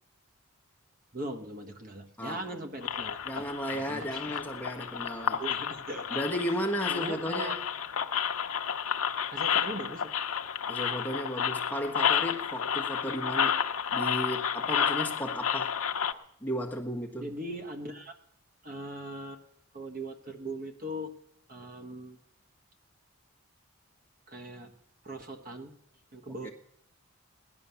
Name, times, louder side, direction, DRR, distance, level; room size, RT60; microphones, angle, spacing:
voice 1, 1.1-3.4 3.7-4.4 5.4-6.2 6.9-7.6 9.3-10.1 17.2-18.1 18.6-19.4 19.7-21.1 21.5-22.2 24.3-24.7 25.0-25.7 26.1-26.5, right 1 dB, 40° right, 5 dB, 1.3 m, -40 dB
sound 1, 2.8-16.1, left 8 dB, 75° left, 0.8 m, -31 dB
voice 2, 3.2-5.4 6.1-7.6 10.7-13.6 13.9-15.7 16.4-17.3 26.4-26.5, equal, 10° left, 1 dB, 1.4 m, -34 dB
17.5 x 11.0 x 7.0 m, 0.75 s
head